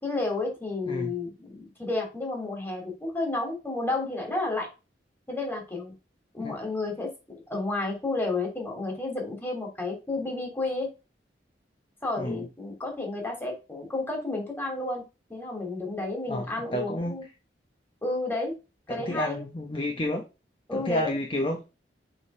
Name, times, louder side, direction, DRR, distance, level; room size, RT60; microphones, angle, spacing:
voice 1, 0.0-4.7 5.3-5.9 6.3-10.9 12.0-15.0 15.3-17.2 18.0-18.5 18.9-19.4 20.7-21.1, left 2 dB, 10° left, 2.7 m, -31 dB
voice 2, 16.7-17.1 18.9-20.2 20.7-21.7, left 1 dB, 30° left, 0.9 m, -30 dB
7.0 x 3.6 x 5.5 m
head